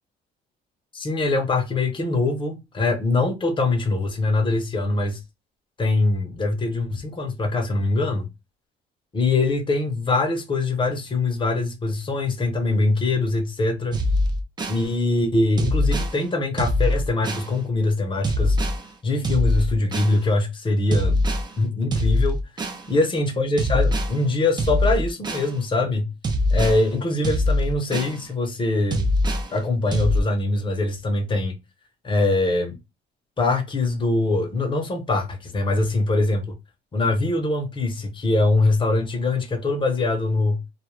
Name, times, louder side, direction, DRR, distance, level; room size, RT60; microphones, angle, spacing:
voice 1, 0.9-5.2 5.8-8.3 9.1-14.0 14.7-18.6 19.0-21.2 21.6-22.4 22.9-26.1 26.5-29.1 29.5-31.6 32.0-32.8 33.4-36.6 36.9-40.6, left 2 dB, 30° left, 0.8 m, -23 dB
sound 1, 13.9-14.8 15.6-16.1 16.6-17.5 18.2-18.8 19.2-20.1 20.9-21.5 21.9-22.8 23.6-24.1 24.6-25.5 26.2-26.8 27.2-28.2 28.9-29.5 29.9-30.2, left 1 dB, 25° right, 0.5 m, -22 dB
2.3 x 2.2 x 3.1 m
cardioid pair, 110°, 17 cm